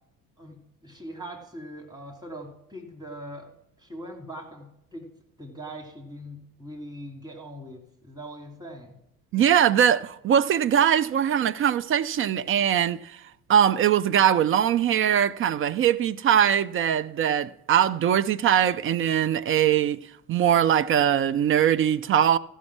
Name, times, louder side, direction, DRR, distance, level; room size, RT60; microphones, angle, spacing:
voice 1, 0.4-3.5 3.8-5.1 5.4-8.9, right 1 dB, 10° right, 2.5 m, -41 dB
voice 2, 9.3-13.2 13.5-20.0 20.3-22.4, right 9 dB, 30° right, 0.4 m, -21 dB
14.5 x 5.5 x 6.0 m
figure-of-eight pair, 55°, 44 cm